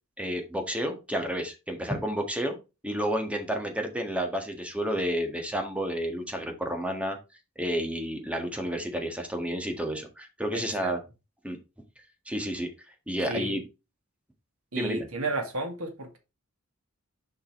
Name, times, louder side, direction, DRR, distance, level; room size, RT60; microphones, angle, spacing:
voice 1, 0.2-2.6 2.8-7.2 7.6-11.0 11.4-11.6 12.3-12.7 13.1-13.6 14.8-15.1, equal, 5° right, 4 dB, 1.6 m, -30 dB
voice 2, 10.5-10.9 13.3-13.5 14.7-16.2, right 2 dB, 90° right, 4 dB, 2.0 m, -32 dB
6.7 x 5.4 x 3.2 m, 0.27 s
head